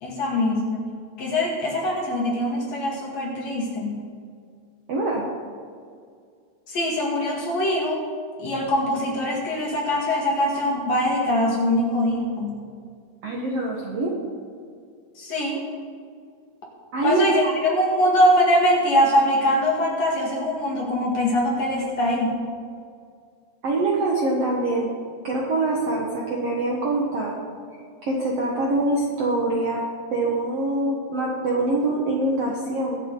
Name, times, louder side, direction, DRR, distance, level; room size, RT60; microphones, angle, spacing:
voice 1, 0.0-0.9 1.2-4.0 6.7-8.0 8.4-12.6 15.2-15.6 17.0-22.4, left 1 dB, 50° left, -2 dB, 2.6 m, -22 dB
voice 2, 4.9-5.3 13.2-14.1 16.9-17.7 23.6-24.9 25.2-27.5 28.0-29.8 30.1-33.0, right 2 dB, 60° right, -3 dB, 1.7 m, -24 dB
22.5 x 7.8 x 3.8 m, 2.2 s
omnidirectional pair, 4.6 m